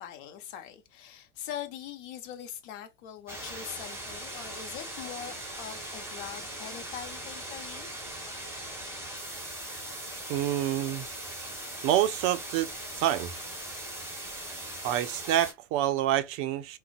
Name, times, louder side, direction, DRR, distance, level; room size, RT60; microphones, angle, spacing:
voice 1, 0.0-7.9, left 10 dB, 50° left, 0.8 m, -42 dB
sound 1, 3.3-15.5, right 1 dB, 5° right, 1.1 m, -40 dB
voice 2, 10.3-11.1 11.8-12.7 13.0-13.3 14.8-16.8, right 12 dB, 35° right, 0.4 m, -27 dB
3.7 x 2.2 x 2.5 m
hypercardioid pair, 100°, 37 cm